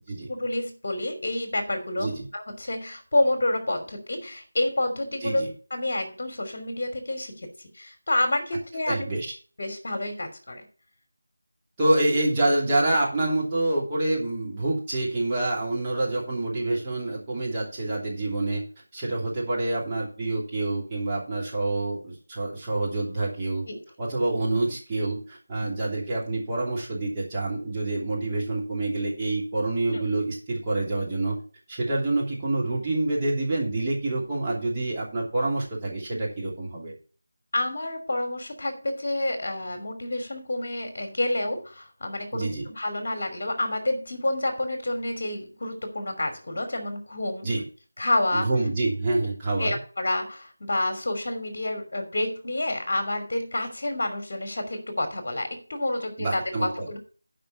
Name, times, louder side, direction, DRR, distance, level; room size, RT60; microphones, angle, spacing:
voice 1, 0.3-5.4 5.7-7.5 7.7-9.1 9.6-10.6 19.0-19.2 23.7-23.8 25.6-25.8 29.9-30.0 37.5-47.5 48.0-48.5 49.6-57.0, left 1 dB, 50° left, 6 dB, 2.8 m, -29 dB
voice 2, 8.9-9.3 11.8-18.6 18.9-23.6 24.0-31.4 31.7-36.9 42.3-42.7 47.4-47.6 48.3-49.8 56.2-56.9, right 2 dB, 15° right, -6 dB, 2.9 m, -27 dB
11.0 x 5.4 x 5.9 m, 0.38 s
figure-of-eight pair, 170°, 0 cm